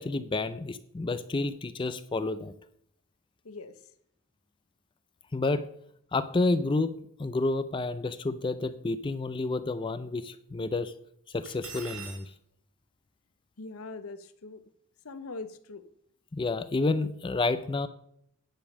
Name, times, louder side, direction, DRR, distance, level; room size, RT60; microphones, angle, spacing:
voice 1, 0.0-2.5 5.3-5.7 6.1-10.9 11.3-12.3 16.3-17.9, left 3 dB, 20° left, 13 dB, 0.4 m, -30 dB
voice 2, 3.4-3.8 13.6-14.6 15.0-15.8, left 3 dB, 75° left, 12 dB, 0.8 m, -41 dB
Cutlery silverware, 11.5-12.2, right 6 dB, 60° right, 2.2 m, -42 dB
10.0 x 5.3 x 6.2 m, 0.69 s
head